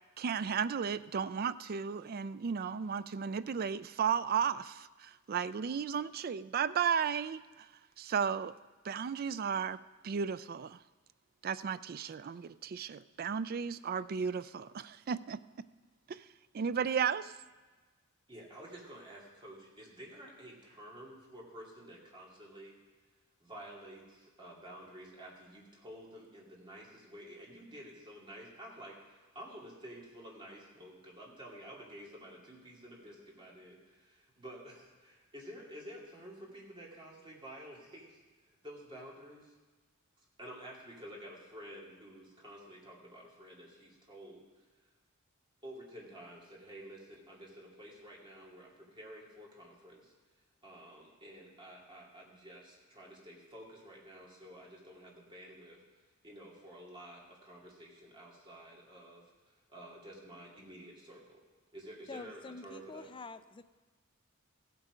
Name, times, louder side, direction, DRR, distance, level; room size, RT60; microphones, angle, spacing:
voice 1, 0.2-7.7 8.0-8.5 8.8-9.8 10.0-10.8 11.4-15.4 16.1-16.2 16.5-17.3, right 7 dB, 45° right, 0.3 m, -34 dB
voice 2, 18.3-22.8 23.4-39.5 40.4-44.4 45.6-50.1 50.6-55.8 56.2-61.4 61.7-63.1, equal, 25° right, 2.5 m, -51 dB
voice 3, 62.1-63.6, left 3 dB, 25° left, 0.4 m, -47 dB
15.5 x 8.2 x 5.0 m
head